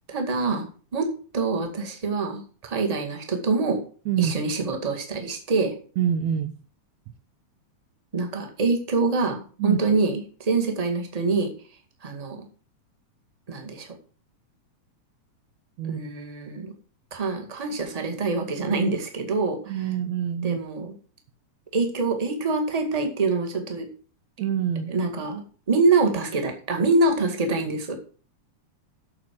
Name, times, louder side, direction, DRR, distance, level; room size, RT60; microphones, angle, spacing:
voice 1, 0.1-3.8 4.2-5.7 8.1-11.5 12.0-12.4 13.5-13.9 15.9-16.7 17.1-19.7 20.4-20.9 21.7-23.9 24.9-25.4 25.7-27.9, right 3 dB, 15° right, 3 dB, 1.5 m, -25 dB
voice 2, 6.0-6.5 9.6-9.8 15.8-16.0 19.7-20.6 24.4-25.0, right 9 dB, 75° right, 8 dB, 1.8 m, -26 dB
8.8 x 6.9 x 7.6 m, 0.41 s
omnidirectional pair, 3.6 m